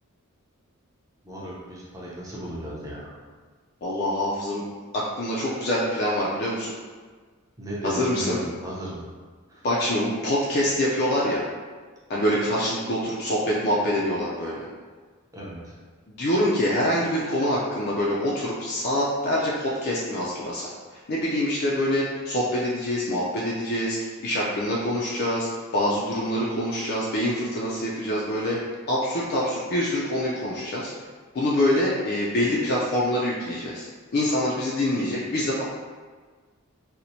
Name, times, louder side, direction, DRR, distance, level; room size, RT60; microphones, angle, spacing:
voice 1, 1.3-3.0 7.6-9.0 15.3-15.6, right 1 dB, 15° right, -6 dB, 0.6 m, -35 dB
voice 2, 3.8-4.6 4.9-6.7 7.8-8.4 9.6-11.4 12.1-14.7 16.1-20.6 20.9-25.5 25.7-28.6 28.9-30.9 31.3-35.6, left 1 dB, 45° left, -5 dB, 0.4 m, -25 dB
4.2 x 2.1 x 2.6 m, 1.5 s
head